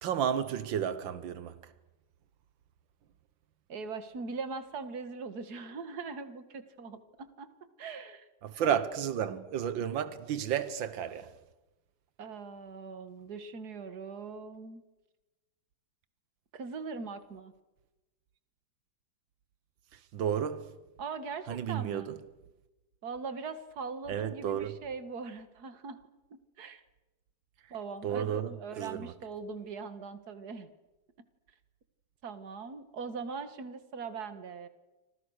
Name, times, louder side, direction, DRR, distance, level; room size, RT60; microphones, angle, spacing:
voice 1, 0.0-1.6 8.4-11.3 19.9-20.7 21.5-22.2 24.1-24.8 28.0-29.1, right 9 dB, 90° right, 1.8 m, -32 dB
voice 2, 3.7-7.5 7.8-8.3 8.6-8.8 12.2-14.8 16.5-17.5 21.0-22.1 23.0-26.0 26.3-26.8 27.7-30.7 32.2-34.7, right 4 dB, 55° right, 2.2 m, -41 dB
30.0 x 26.0 x 6.5 m
omnidirectional pair, 2.0 m